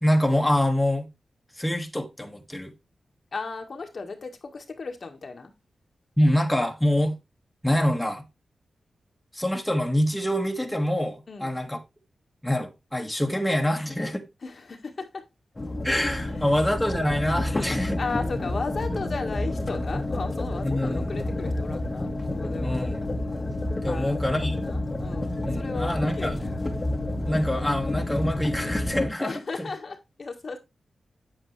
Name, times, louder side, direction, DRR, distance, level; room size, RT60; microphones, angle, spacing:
voice 1, 0.0-1.1 1.6-2.7 6.2-7.1 7.6-8.2 9.3-11.8 12.4-14.2 15.8-18.0 20.6-21.0 22.6-23.1 23.8-24.6 25.4-26.3 27.3-29.3, left 1 dB, 5° left, 1.8 m, -25 dB
voice 2, 3.3-5.5 11.3-11.6 14.4-15.3 16.3-16.5 18.0-22.8 23.8-26.6 29.2-30.6, left 4 dB, 55° left, 1.6 m, -35 dB
sound 1, 15.6-29.1, left 1 dB, 25° left, 1.5 m, -29 dB
8.7 x 7.9 x 3.2 m
wide cardioid pair, 90°, 0 cm